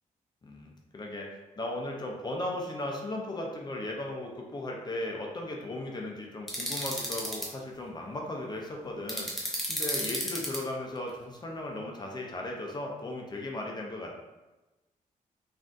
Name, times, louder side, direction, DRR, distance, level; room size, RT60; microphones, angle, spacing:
voice 1, 0.4-14.2, left 1 dB, 30° left, 0 dB, 0.5 m, -37 dB
sound 1, 6.5-7.5 9.1-10.6, equal, ahead, 0.8 m, -32 dB
3.4 x 2.5 x 2.5 m, 1.1 s
cardioid pair, 90°, 14 cm